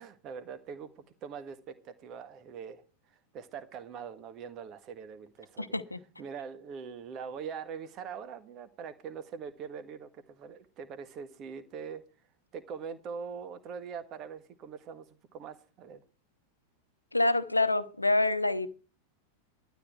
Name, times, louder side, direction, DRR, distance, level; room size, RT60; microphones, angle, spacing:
voice 1, 0.0-5.8 6.2-12.0 12.5-16.0, right 6 dB, 35° right, 1.6 m, -43 dB
voice 2, 5.6-6.0 17.1-18.7, left 2 dB, 85° left, 0.8 m, -27 dB
12.5 x 10.5 x 4.6 m
figure-of-eight pair, 90°, 0 cm